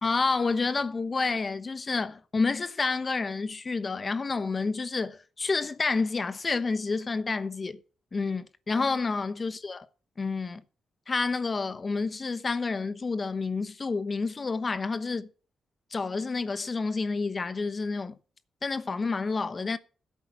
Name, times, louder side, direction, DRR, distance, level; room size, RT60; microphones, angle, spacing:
voice 1, 0.0-7.8 8.1-9.9 10.2-10.6 11.1-15.3 15.9-18.2 18.6-19.8, left 4 dB, 40° left, 1.0 m, -29 dB
10.5 x 8.4 x 7.3 m
supercardioid pair, 50°, 0 cm